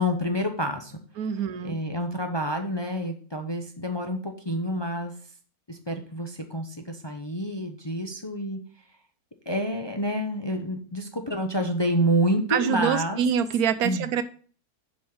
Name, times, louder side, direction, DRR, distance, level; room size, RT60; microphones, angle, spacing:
voice 1, 0.0-1.0 1.6-5.1 5.7-8.6 9.5-13.2 13.8-14.1, equal, 25° left, 0.6 m, -28 dB
voice 2, 1.2-1.8 12.5-14.2, right 8 dB, 80° right, 1.2 m, -25 dB
7.1 x 5.2 x 6.1 m
omnidirectional pair, 1.6 m